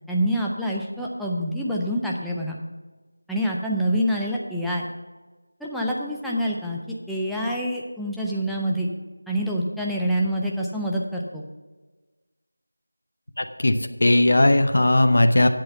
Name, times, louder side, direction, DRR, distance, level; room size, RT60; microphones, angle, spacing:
voice 1, 0.1-2.6 3.3-4.9 5.6-8.9 9.3-11.4, equal, ahead, -5 dB, 0.4 m, -26 dB
voice 2, 13.4-15.5, left 1 dB, 50° left, 8 dB, 0.7 m, -18 dB
8.1 x 6.6 x 6.9 m, 1.3 s
figure-of-eight pair, 175°, 0 cm